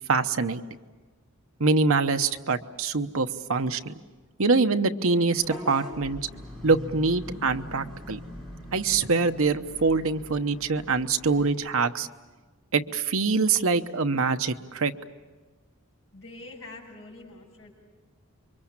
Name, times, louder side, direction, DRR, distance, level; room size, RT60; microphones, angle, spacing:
voice 1, 0.1-0.6 1.6-3.9 4.4-6.2 6.6-8.2 8.7-12.1 12.7-14.9, right 4 dB, 70° right, 8 dB, 1.0 m, -24 dB
Vehicle horn car horn honking / Bus, 5.4-11.5, left 1 dB, ahead, 5.4 m, -42 dB
voice 2, 16.1-17.7, left 2 dB, 55° left, -6 dB, 6.6 m, -45 dB
28.0 x 24.0 x 7.4 m, 1.3 s
head